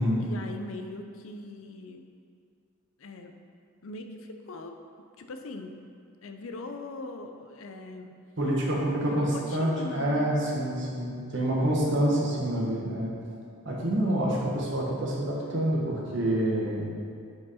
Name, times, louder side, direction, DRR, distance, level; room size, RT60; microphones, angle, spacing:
voice 1, 0.2-2.1 3.0-3.3 3.8-4.8 5.2-5.8 6.2-8.1 9.0-10.3 11.3-12.2 15.5-15.6, left 2 dB, 70° left, 6 dB, 0.5 m, -40 dB
voice 2, 8.4-13.1 13.6-16.9, right 1 dB, 55° right, -4 dB, 1.4 m, -27 dB
7.6 x 4.7 x 4.2 m, 2.4 s
head